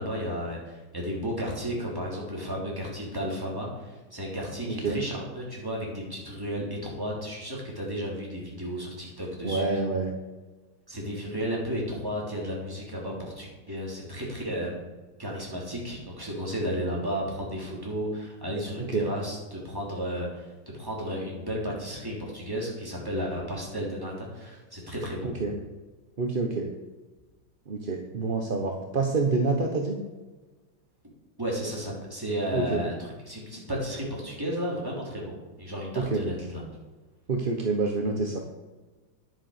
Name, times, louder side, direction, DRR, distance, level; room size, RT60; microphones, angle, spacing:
voice 1, 0.0-9.8 10.9-14.7 15.2-25.3 31.4-32.9 33.2-35.3 35.6-36.6, equal, 10° right, -4 dB, 3.3 m, -33 dB
voice 2, 4.6-5.0 9.4-10.2 18.8-19.1 25.2-25.5 26.2-26.7 27.7-30.0 32.5-32.8 36.0-36.2 37.3-38.4, right 3 dB, 40° right, 2 dB, 0.8 m, -27 dB
10.5 x 7.8 x 6.5 m, 1.2 s
omnidirectional pair, 2.1 m